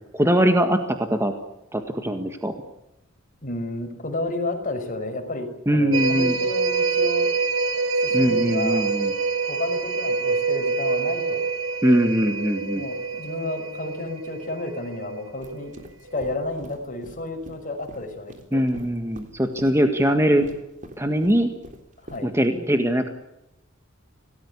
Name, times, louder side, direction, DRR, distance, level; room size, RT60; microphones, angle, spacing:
voice 1, 0.1-1.3 1.7-2.5 5.7-6.4 8.1-9.1 11.8-12.8 18.5-20.5 21.0-21.5 22.2-23.1, equal, 15° right, 6 dB, 1.7 m, -21 dB
voice 2, 3.4-7.3 8.0-8.9 9.5-11.4 12.7-15.7 16.1-18.6 22.0-22.3, left 2 dB, 40° left, 5 dB, 5.9 m, -31 dB
sound 1, 5.9-15.7 16.1-16.2, right 4 dB, 90° right, 2.0 m, -26 dB
sound 2, 15.4-22.3, right 1 dB, 40° right, 3.6 m, -43 dB
27.5 x 18.5 x 8.6 m, 0.90 s
head